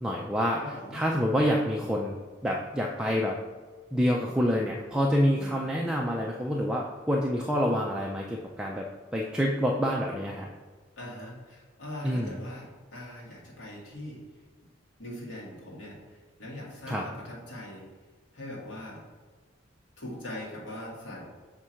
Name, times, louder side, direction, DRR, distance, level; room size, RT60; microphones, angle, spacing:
voice 1, 0.0-0.6 0.9-2.1 2.4-3.4 3.9-8.8 9.1-10.5 12.0-12.4 16.9-17.0, equal, 5° right, -2 dB, 0.4 m, -27 dB
voice 2, 0.6-1.0 5.4-5.6 11.0-14.2 15.0-17.8 18.3-19.0 20.0-21.2, left 1 dB, 70° left, -4 dB, 1.8 m, -41 dB
6.4 x 3.6 x 4.4 m, 1.4 s
head